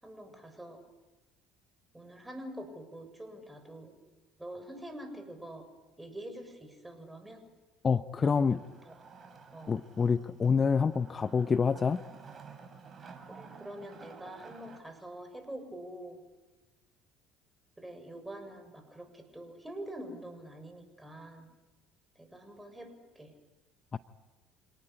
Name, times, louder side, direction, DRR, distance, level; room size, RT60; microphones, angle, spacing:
voice 1, 0.0-0.8 1.9-3.9 4.4-5.6 6.0-7.4 8.2-8.6 9.5-9.7 13.3-16.2 17.8-21.5 22.2-23.3, right 1 dB, 10° right, 6 dB, 7.0 m, -45 dB
voice 2, 7.8-8.6 9.7-12.0 23.9-24.0, left 5 dB, 30° left, 13 dB, 0.8 m, -27 dB
Wood, 8.3-14.8, right 5 dB, 35° right, 5.4 m, -52 dB
27.0 x 19.0 x 9.9 m, 1.2 s
hypercardioid pair, 65°, 0 cm